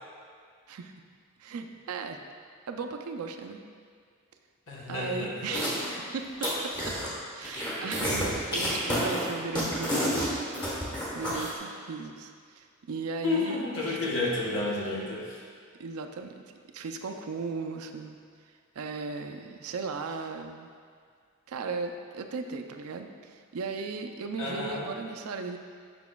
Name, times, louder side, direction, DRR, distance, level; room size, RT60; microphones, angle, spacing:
voice 1, 1.4-2.2 2.7-3.6 4.9-5.8 6.1-6.7 7.3-10.7 11.1-14.1 15.8-16.4 16.7-18.2 18.8-20.7 21.5-25.6, right 4 dB, 90° right, 5 dB, 0.4 m, -36 dB
voice 2, 4.7-6.1 7.8-7.9 13.2-15.4 24.4-24.9, left 2 dB, 65° left, -5 dB, 1.1 m, -32 dB
sound 1, 5.5-5.9 6.2-7.1 7.4-11.5, equal, 20° left, 1.1 m, -29 dB
7.0 x 5.9 x 2.3 m, 2.1 s
head